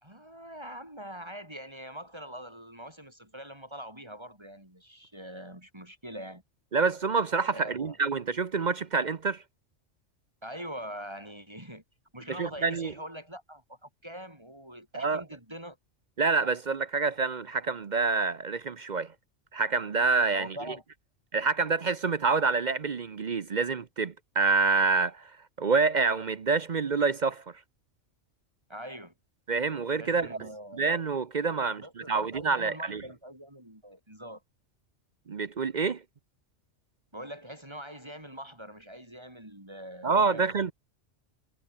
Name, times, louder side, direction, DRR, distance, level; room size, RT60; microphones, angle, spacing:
voice 1, 0.0-6.4 7.5-8.0 10.4-11.8 12.1-15.8 20.3-20.8 28.7-29.1 30.0-30.8 31.6-34.4 37.1-40.5, equal, 20° right, 5.0 m, -43 dB
voice 2, 6.7-9.4 12.3-12.9 14.9-15.2 16.2-19.1 19.5-20.6 21.3-25.3 25.6-27.5 29.5-33.0 35.3-36.0 40.0-40.7, right 4 dB, 45° right, 0.7 m, -27 dB
omnidirectional pair, 1.3 m